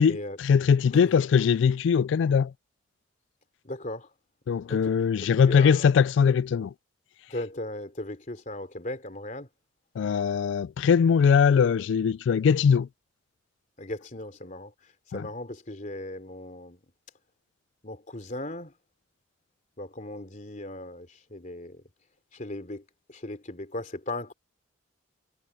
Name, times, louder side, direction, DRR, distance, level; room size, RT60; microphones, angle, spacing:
voice 1, 0.0-2.5 4.5-6.7 10.0-12.9 15.1-15.3, left 6 dB, 65° left, 0.3 m, -21 dB
voice 2, 3.6-4.1 4.7-4.9 5.2-5.9 7.3-9.5 13.8-16.8 17.8-18.7 19.8-21.8 22.3-24.3, left 1 dB, 40° left, 3.2 m, -37 dB
head